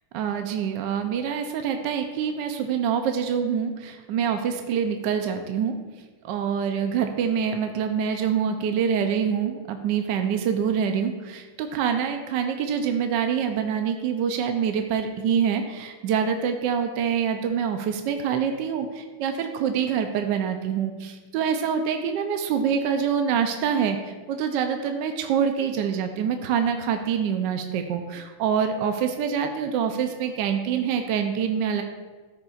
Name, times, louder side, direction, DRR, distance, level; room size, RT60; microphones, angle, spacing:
voice 1, 0.1-5.7 6.2-31.8, right 7 dB, 75° right, 5 dB, 1.1 m, -25 dB
13.5 x 6.7 x 2.4 m, 1.3 s
omnidirectional pair, 2.4 m